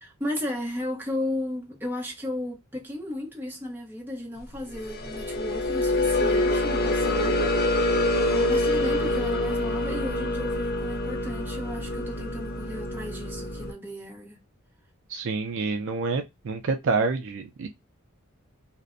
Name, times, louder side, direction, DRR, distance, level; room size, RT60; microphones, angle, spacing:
voice 1, 0.0-7.8 8.1-14.4, left 1 dB, 10° right, 0.8 m, -34 dB
sound 1, 4.7-13.7, left 1 dB, 45° left, 0.5 m, -26 dB
voice 2, 15.1-17.7, right 4 dB, 60° right, 0.4 m, -27 dB
2.5 x 2.1 x 2.5 m
head